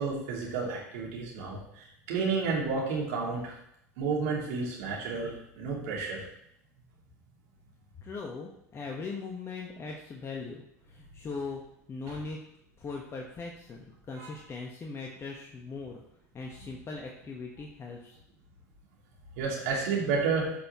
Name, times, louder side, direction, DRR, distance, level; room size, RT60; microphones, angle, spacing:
voice 1, 0.0-3.5 4.0-6.2 14.2-14.3 19.4-20.5, right 4 dB, 65° right, -3 dB, 3.1 m, -31 dB
voice 2, 8.0-10.6 10.9-11.6 11.9-12.4 12.8-16.0 16.3-18.2, left 4 dB, 30° left, 0 dB, 1.3 m, -40 dB
13.0 x 5.7 x 3.1 m, 0.76 s
figure-of-eight pair, 75°, 9 cm